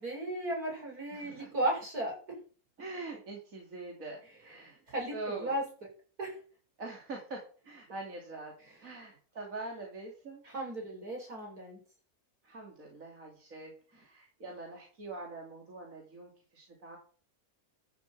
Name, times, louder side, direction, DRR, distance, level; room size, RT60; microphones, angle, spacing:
voice 1, 0.0-2.2 4.9-5.1 5.4-5.6 6.2-6.4 10.4-11.8, right 1 dB, 80° right, -1 dB, 7.2 m, -35 dB
voice 2, 1.1-1.5 2.8-4.8 5.1-5.6 6.8-8.5 8.8-10.4 12.4-17.0, right 2 dB, 60° right, -1 dB, 3.3 m, -44 dB
13.5 x 7.0 x 7.6 m, 0.41 s
omnidirectional pair, 1.6 m